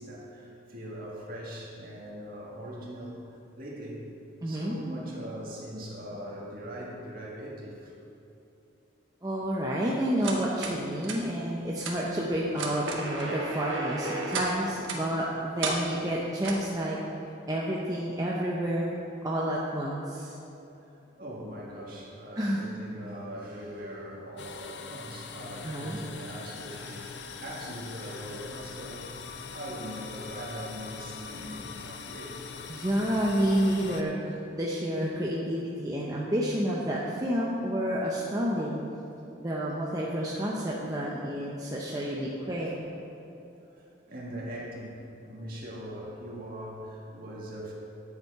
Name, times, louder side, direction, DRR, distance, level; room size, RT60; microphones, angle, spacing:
voice 1, 0.0-3.3 3.6-4.1 4.4-7.9 20.9-29.1 29.5-32.4 42.6-42.8 43.7-47.7, equal, 45° right, -4 dB, 1.9 m, -41 dB
voice 2, 4.4-4.7 9.2-17.0 17.5-19.0 19.2-20.4 22.4-22.6 25.6-26.0 32.7-38.8 39.4-42.8, equal, 20° right, -5 dB, 0.7 m, -29 dB
sound 1, 10.2-10.8 11.0-11.2 11.8-11.9 12.5-14.5 14.8-15.0 15.6-15.8 16.4-16.7, right 3 dB, 75° right, 1.3 m, -33 dB
sound 2, 24.4-34.0, left 5 dB, 60° left, 0.5 m, -42 dB
11.0 x 7.1 x 4.7 m, 2.9 s
head